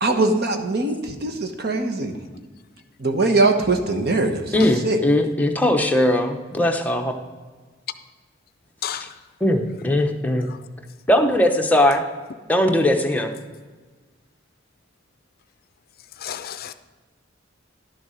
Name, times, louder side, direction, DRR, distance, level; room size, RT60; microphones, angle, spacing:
voice 1, 0.0-2.2 3.0-5.0, right 2 dB, 55° right, 6 dB, 1.0 m, -22 dB
voice 2, 4.5-7.1 9.4-10.5 11.1-12.0 12.5-13.3, left 1 dB, 10° left, 3 dB, 0.8 m, -19 dB
voice 3, 8.8-9.2 10.5-10.7 16.2-16.7, left 8 dB, 50° left, 12 dB, 0.5 m, -32 dB
11.5 x 7.0 x 5.0 m, 1.4 s
head